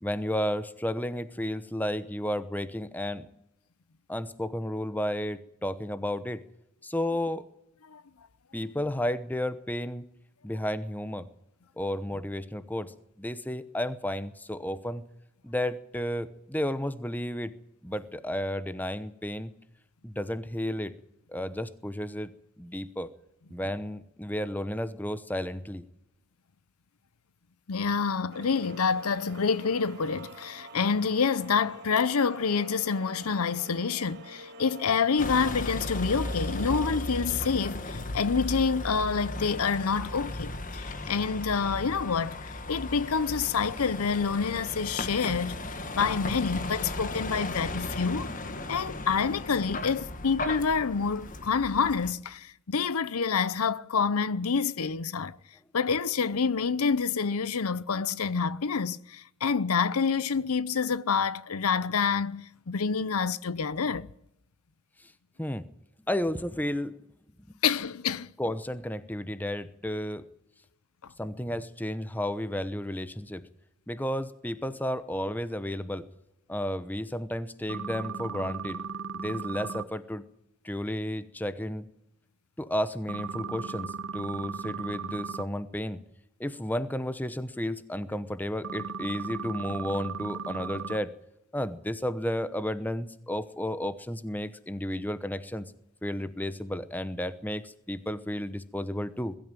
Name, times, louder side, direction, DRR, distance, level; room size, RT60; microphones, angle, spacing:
voice 1, 0.0-3.3 4.1-6.4 6.8-7.4 8.5-10.1 10.4-11.3 11.8-12.9 13.2-15.0 15.4-17.5 17.8-19.5 20.0-20.9 21.3-22.3 22.6-23.1 23.5-25.8 65.4-65.7 66.1-67.0 67.5-67.6 68.4-70.2 71.2-73.4 73.9-76.1 76.5-78.8 79.1-80.2 80.6-81.9 82.6-86.0 86.4-91.1 91.5-95.7 96.0-99.4, left 1 dB, 10° left, 0.9 m, -32 dB
voice 2, 27.7-45.6 45.9-48.3 48.7-55.4 55.7-64.1 67.6-68.3, left 5 dB, 90° left, 0.7 m, -27 dB
sound 1, 28.3-37.0, right 1 dB, 50° right, 3.2 m, -46 dB
Vehicle, 35.2-52.1, left 2 dB, 35° left, 1.5 m, -36 dB
sound 2, 77.7-79.8 83.1-85.4 88.6-91.0, right 5 dB, 65° right, 1.0 m, -36 dB
21.5 x 13.0 x 9.1 m
head